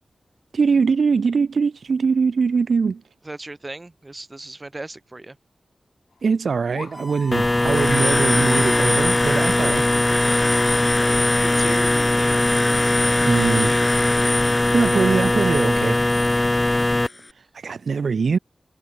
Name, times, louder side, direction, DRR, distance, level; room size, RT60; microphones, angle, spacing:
voice 1, 0.5-3.0 6.2-9.8 13.3-13.7 14.7-16.0 17.5-18.4, right 5 dB, 85° right, 0.5 m, -22 dB
voice 2, 3.2-5.4 10.2-10.5 11.4-12.5 13.6-13.8, right 2 dB, 30° right, 2.3 m, -37 dB
sound 1, 6.1-6.4 6.7-11.7 12.3-13.7, left 5 dB, 85° left, 6.8 m, -45 dB
Harmonica, 6.9-10.9, equal, 5° left, 0.8 m, -38 dB
sound 2, 7.3-17.1, left 2 dB, 25° left, 0.5 m, -19 dB
wide cardioid pair, 75°, 0 cm